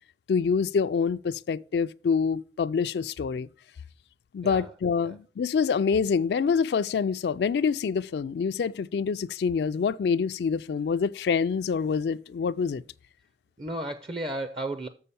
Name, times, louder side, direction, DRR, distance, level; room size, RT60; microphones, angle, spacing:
voice 1, 0.3-3.5 4.3-12.8, left 6 dB, 70° left, 0.3 m, -26 dB
voice 2, 4.4-4.7 5.0-5.2 13.6-14.9, right 1 dB, 30° right, 0.5 m, -34 dB
6.9 x 5.6 x 6.8 m
head